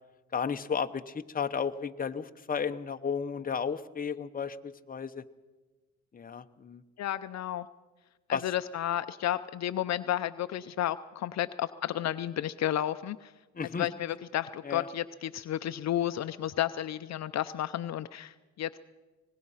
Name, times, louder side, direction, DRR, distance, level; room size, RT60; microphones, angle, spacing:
voice 1, 0.3-5.2 6.1-6.8 8.3-8.4 13.5-13.9 14.6-14.9, left 6 dB, 30° left, 8 dB, 1.0 m, -33 dB
voice 2, 7.0-7.7 8.3-13.3 13.8-18.8, left 12 dB, 60° left, 12 dB, 0.6 m, -32 dB
24.0 x 19.5 x 5.7 m, 1.2 s
cardioid pair, 90°, 30 cm